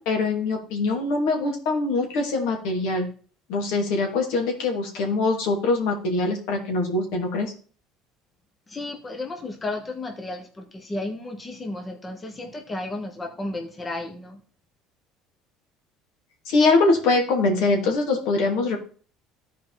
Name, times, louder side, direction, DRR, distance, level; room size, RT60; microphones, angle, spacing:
voice 1, 0.0-3.1 3.5-7.5 16.5-18.8, left 3 dB, 75° left, 2 dB, 2.5 m, -23 dB
voice 2, 8.7-14.4, left 2 dB, 25° left, 3 dB, 1.2 m, -33 dB
13.0 x 4.7 x 3.9 m, 0.40 s
supercardioid pair, 95°, 0 cm